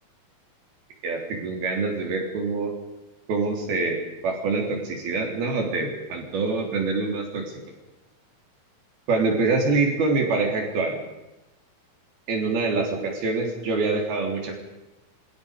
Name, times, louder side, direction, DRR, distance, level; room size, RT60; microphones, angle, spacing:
voice 1, 1.0-2.7 3.3-7.5 9.1-11.0 12.3-14.6, right 3 dB, 75° right, 2 dB, 5.2 m, -25 dB
27.0 x 24.0 x 5.1 m, 1.0 s
omnidirectional pair, 4.5 m